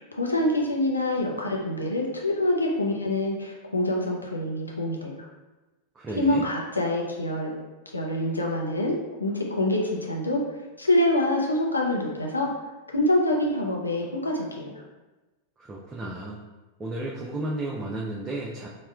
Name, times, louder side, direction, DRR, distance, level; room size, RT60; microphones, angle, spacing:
voice 1, 0.0-5.2 6.2-7.5 7.9-10.4 10.8-12.5 12.9-14.8, left 1 dB, 80° left, -1 dB, 0.5 m, -26 dB
voice 2, 6.0-6.4 15.7-16.4 16.8-18.7, right 2 dB, 20° right, -4 dB, 0.4 m, -33 dB
4.2 x 2.1 x 2.3 m, 1.1 s
figure-of-eight pair, 90°, 0 cm